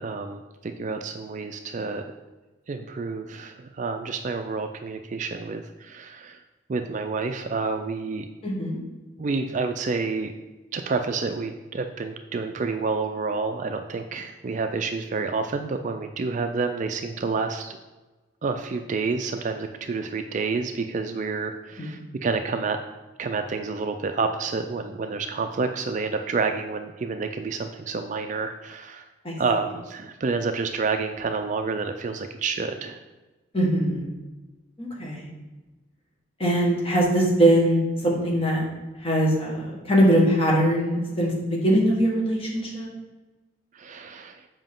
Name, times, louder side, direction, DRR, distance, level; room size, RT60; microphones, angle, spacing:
voice 1, 0.0-2.1 2.7-6.4 6.7-8.3 9.2-10.3 10.7-17.8 18.4-22.8 23.2-29.1 29.4-33.0 43.7-44.4, right 4 dB, 35° right, 6 dB, 0.3 m, -29 dB
voice 2, 8.4-8.8 21.8-21.9 29.2-29.4 33.5-34.1 34.8-35.3 36.4-38.6 39.0-42.9, right 1 dB, 30° left, -3 dB, 1.6 m, -22 dB
7.3 x 5.2 x 3.7 m, 1.1 s
head